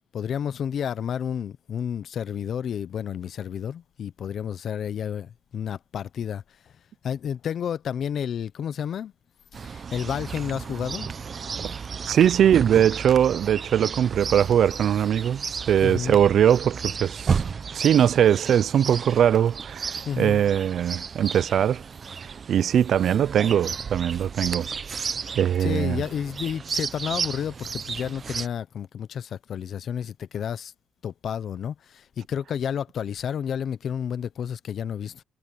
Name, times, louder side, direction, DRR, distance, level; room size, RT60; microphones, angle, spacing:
voice 1, 0.1-6.4 7.0-9.1 9.6-11.1 15.8-16.2 20.0-20.4 25.6-30.7 31.0-35.2, left 8 dB, 60° left, 0.8 m, -31 dB
Chirp tweet, 9.5-28.5, right 6 dB, 45° right, 0.9 m, -33 dB
voice 2, 12.0-17.4 17.7-21.8 22.2-24.7 25.4-26.0, right 9 dB, 65° right, 0.6 m, -21 dB
cardioid pair, 80°, 0 cm